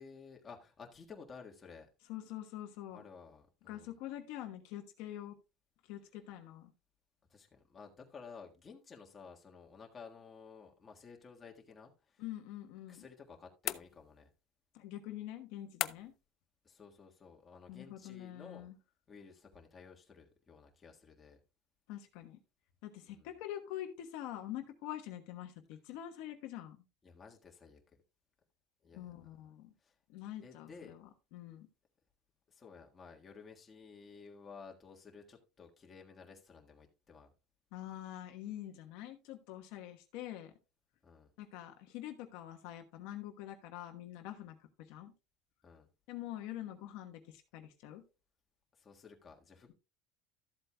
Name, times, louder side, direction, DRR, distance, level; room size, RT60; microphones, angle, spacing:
voice 1, 0.0-1.9 2.9-3.9 7.3-12.2 12.9-14.3 16.6-18.6 19.1-21.4 23.1-23.3 27.0-27.8 28.8-29.1 29.8-29.9 30.4-31.0 32.5-37.3 41.0-41.3 45.6-45.9 48.8-49.7, left 5 dB, 20° left, 1.6 m, -54 dB
voice 2, 2.1-3.0 3.6-5.4 5.9-6.7 12.2-13.0 14.7-16.1 17.7-18.8 21.9-22.4 22.8-26.8 28.9-29.7 30.1-31.7 37.7-40.5 41.4-44.6 44.9-45.1 46.1-48.0, left 12 dB, 70° left, 1.1 m, -45 dB
sound 1, 13.6-14.4 15.8-16.3, left 13 dB, 45° left, 0.4 m, -39 dB
13.5 x 7.9 x 2.2 m
cardioid pair, 145°, 0 cm